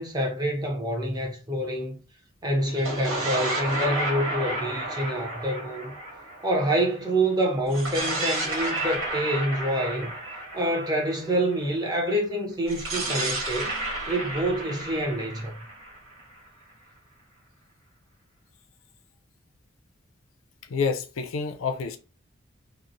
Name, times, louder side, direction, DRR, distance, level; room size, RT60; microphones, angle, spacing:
voice 1, 0.0-2.0 2.4-5.9 6.4-10.1 10.5-13.7 14.1-15.7, right 1 dB, 20° right, 0.6 m, -27 dB
sound 1, 2.7-7.1 7.7-11.6 12.7-16.5, right 2 dB, 80° right, 1.3 m, -31 dB
voice 2, 20.7-22.0, left 5 dB, 80° left, 0.4 m, -28 dB
3.0 x 2.0 x 2.5 m
head